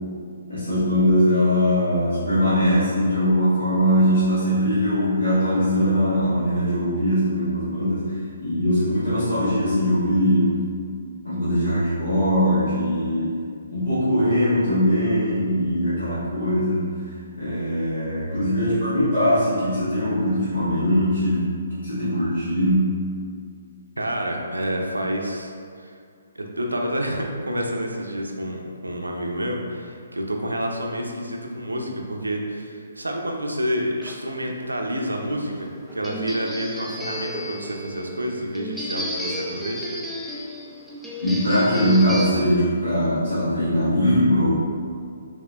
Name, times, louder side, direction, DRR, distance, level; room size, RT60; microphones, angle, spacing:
voice 1, 0.5-10.6 11.2-13.3 13.7-16.9 17.3-21.5 21.8-23.0 41.2-44.5, equal, 65° left, -13 dB, 1.4 m, -21 dB
voice 2, 24.0-26.0 26.3-39.9, equal, 85° right, 1 dB, 0.6 m, -28 dB
sound 1, 34.0-42.3, equal, ahead, 0.4 m, -33 dB
5.5 x 2.8 x 2.4 m, 2.3 s
figure-of-eight pair, 135°, 0 cm